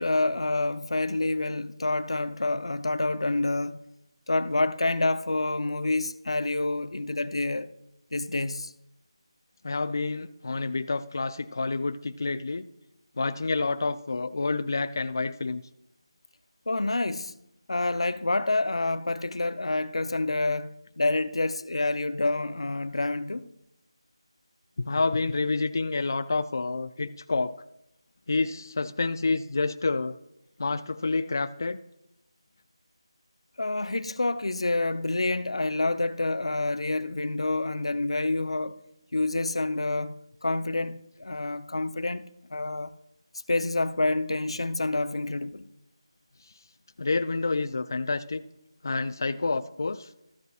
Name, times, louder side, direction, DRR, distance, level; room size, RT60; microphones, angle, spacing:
voice 1, 0.0-3.8 4.3-7.7 8.1-8.7 16.7-17.4 17.7-23.4 33.6-38.8 39.1-42.9 43.5-45.7, left 2 dB, 80° left, 0.6 m, -28 dB
voice 2, 9.6-12.7 13.2-15.6 24.8-27.5 28.3-30.1 30.6-31.8 47.0-48.4 48.8-50.1, left 3 dB, 40° left, 0.3 m, -28 dB
14.0 x 8.0 x 2.4 m
figure-of-eight pair, 175°, 3 cm